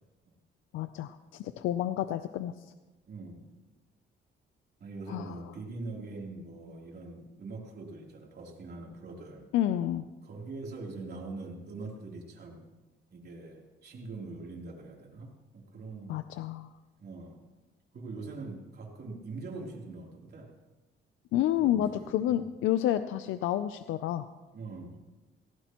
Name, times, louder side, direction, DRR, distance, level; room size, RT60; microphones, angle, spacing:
voice 1, 0.7-2.5 5.1-5.3 9.5-10.0 16.1-16.7 21.3-24.3, left 12 dB, 85° left, 11 dB, 0.5 m, -29 dB
voice 2, 3.1-3.6 4.8-9.5 10.2-12.6 13.1-16.2 17.0-17.4 17.9-20.6 21.6-22.4 24.5-25.0, right 3 dB, 55° right, -1 dB, 3.3 m, -43 dB
18.5 x 16.0 x 3.0 m, 1.2 s
cardioid pair, 90°, 20 cm